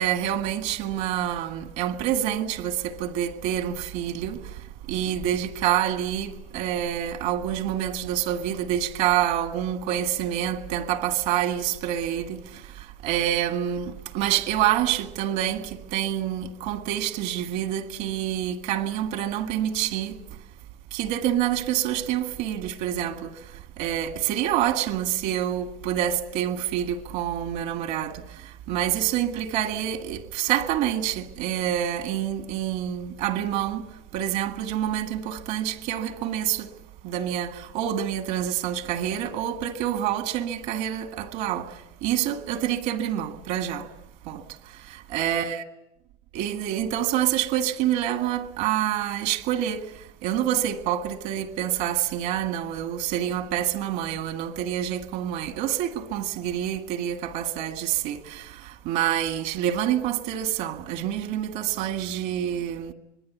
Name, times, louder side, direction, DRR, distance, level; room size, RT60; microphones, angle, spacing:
voice 1, 0.0-4.4 4.9-12.4 13.0-15.7 15.9-20.2 20.9-23.3 23.8-28.2 28.7-33.8 34.1-36.7 37.0-41.7 42.0-43.8 44.3-44.4 45.1-45.6 46.3-49.8 50.2-58.4 58.9-62.9, right 11 dB, 65° right, 1.8 m, -27 dB
25.5 x 21.0 x 8.4 m
cardioid pair, 180°, 18 cm